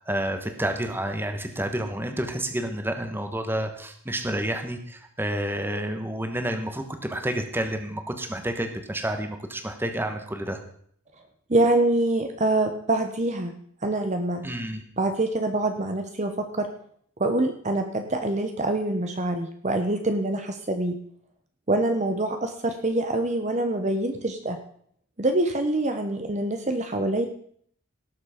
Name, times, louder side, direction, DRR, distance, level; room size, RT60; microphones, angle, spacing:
voice 1, 0.1-10.6 14.4-14.8, right 1 dB, 10° right, 6 dB, 1.2 m, -29 dB
voice 2, 11.5-13.5 13.8-14.4 15.0-16.7 17.2-21.0 21.7-24.6 25.2-27.3, right 2 dB, 30° right, 6 dB, 0.9 m, -25 dB
17.5 x 7.4 x 5.1 m, 0.63 s
head